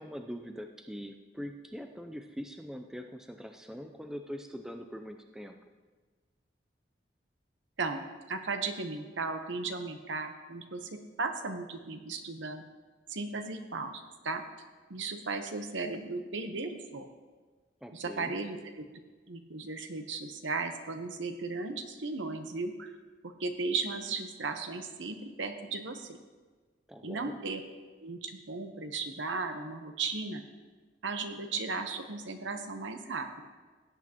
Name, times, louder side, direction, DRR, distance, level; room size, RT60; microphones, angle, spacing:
voice 1, 0.0-5.6 17.8-18.4 26.9-27.4, equal, 5° right, 5 dB, 0.4 m, -43 dB
voice 2, 7.8-12.6 13.1-14.4 14.9-17.1 17.9-18.9 19.3-22.9 23.2-26.2 27.0-27.6 28.0-30.4 31.0-33.4, right 3 dB, 80° right, 7 dB, 0.9 m, -36 dB
16.5 x 8.3 x 2.9 m, 1.4 s
head